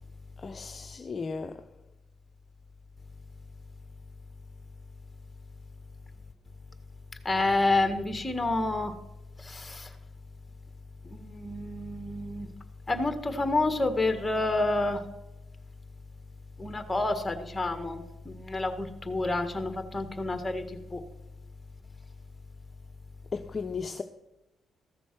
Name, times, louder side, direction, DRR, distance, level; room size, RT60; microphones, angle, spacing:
voice 1, 0.4-1.5 23.3-24.0, left 5 dB, 35° left, 0.6 m, -35 dB
voice 2, 7.3-8.9 9.4-9.9 11.0-12.5 12.9-15.0 16.6-21.0, left 2 dB, 15° left, 1.7 m, -29 dB
14.5 x 6.9 x 6.2 m
cardioid pair, 90°, 0 cm